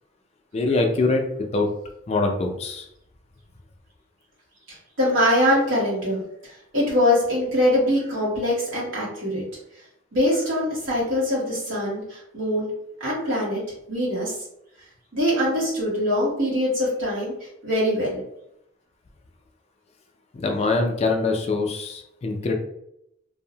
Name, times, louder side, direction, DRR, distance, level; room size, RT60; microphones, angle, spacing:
voice 1, 0.5-1.2 1.5-1.7 2.1-2.9 20.3-22.5, left 3 dB, 35° left, 3 dB, 0.3 m, -23 dB
voice 2, 4.7-6.2 6.5-9.4 10.1-12.7 13.0-13.6 13.9-14.3 15.1-17.3 17.6-18.2, left 1 dB, 90° right, -6 dB, 1.0 m, -23 dB
2.7 x 2.0 x 2.7 m, 0.79 s
head